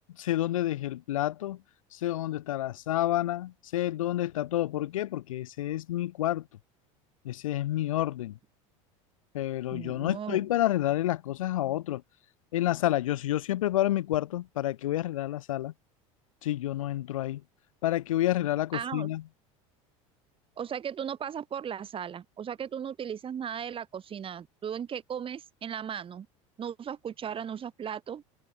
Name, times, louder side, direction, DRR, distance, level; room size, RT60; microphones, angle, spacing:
voice 1, 0.2-1.6 1.9-6.5 7.2-8.4 9.3-12.0 12.5-15.7 16.4-17.4 17.8-19.2, left 14 dB, 85° left, 1.9 m, -29 dB
voice 2, 9.7-10.4 18.7-19.1 20.6-26.3 26.6-28.2, right 8 dB, 30° right, 1.7 m, -36 dB
hypercardioid pair, 85°, 17 cm